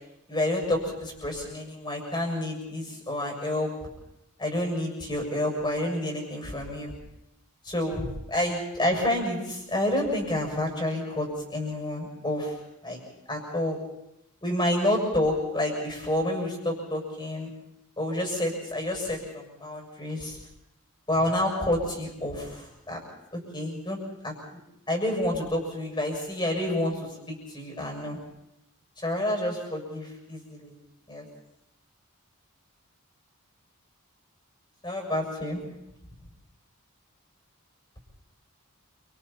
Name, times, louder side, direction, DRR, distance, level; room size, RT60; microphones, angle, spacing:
voice 1, 0.3-3.7 4.4-6.9 7.6-12.5 12.8-13.0 13.3-13.8 14.4-17.5 18.0-20.4 21.1-23.0 23.3-24.0 24.2-24.3 24.9-28.2 29.0-30.7 31.1-31.2 34.8-35.6, left 1 dB, 20° left, 1 dB, 6.7 m, -29 dB
29.5 x 26.5 x 4.4 m, 0.85 s
head